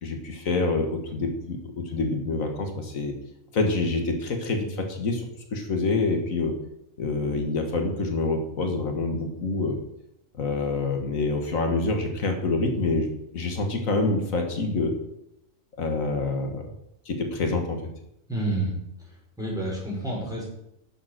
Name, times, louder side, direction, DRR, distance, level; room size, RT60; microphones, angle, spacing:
voice 1, 0.0-3.1 3.5-6.6 7.0-9.8 10.3-13.1 13.3-15.0 15.8-16.7 17.1-17.8, left 3 dB, 90° left, 4 dB, 2.0 m, -26 dB
voice 2, 18.3-18.7 19.4-20.4, right 1 dB, 5° right, -4 dB, 4.9 m, -28 dB
11.0 x 7.0 x 6.5 m, 0.80 s
omnidirectional pair, 1.4 m